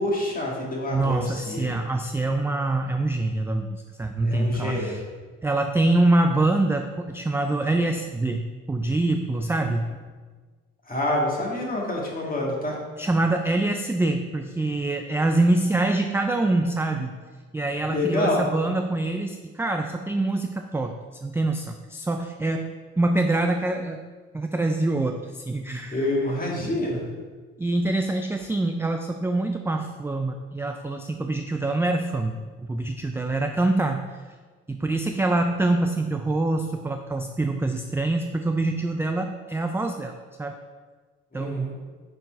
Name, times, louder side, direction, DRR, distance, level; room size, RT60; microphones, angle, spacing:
voice 1, 0.0-1.7 4.2-5.0 10.9-12.8 17.9-18.4 25.9-27.0 41.3-41.7, left 1 dB, 30° left, -3 dB, 1.9 m, -27 dB
voice 2, 0.9-5.1 5.4-9.9 13.0-17.2 17.5-24.0 24.3-26.1 27.6-32.4 32.7-34.0 34.7-40.6 41.3-41.7, right 2 dB, 10° right, 5 dB, 0.3 m, -25 dB
5.4 x 4.5 x 4.6 m, 1.4 s
cardioid pair, 80°, 29 cm